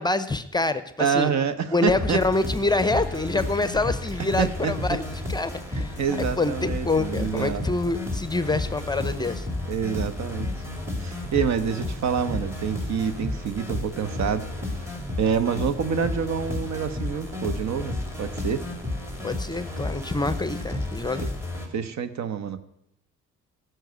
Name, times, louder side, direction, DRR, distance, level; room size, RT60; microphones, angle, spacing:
voice 1, 0.0-1.3 1.7-9.5 19.2-21.2, left 2 dB, 15° left, 12 dB, 0.7 m, -26 dB
voice 2, 1.0-2.2 4.4-4.7 5.7-7.7 9.7-10.5 11.0-14.5 15.2-18.6 21.7-22.6, right 7 dB, 65° right, 11 dB, 1.1 m, -27 dB
sound 1, 1.9-21.7, left 2 dB, 10° right, 2.7 m, -32 dB
14.0 x 6.3 x 8.0 m, 0.78 s
cardioid pair, 90°, 30 cm